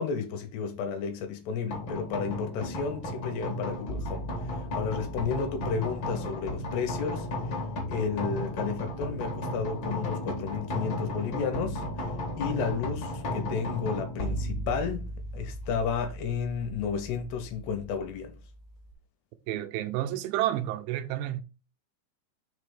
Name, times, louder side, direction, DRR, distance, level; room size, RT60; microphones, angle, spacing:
voice 1, 0.0-7.6 7.9-18.4, left 6 dB, 75° left, 2.8 m, -32 dB
sound 1, 1.7-18.9, left 1 dB, 55° left, 1.3 m, -35 dB
voice 2, 19.5-21.4, right 13 dB, 90° right, 2.9 m, -30 dB
6.5 x 3.3 x 4.9 m
omnidirectional pair, 5.0 m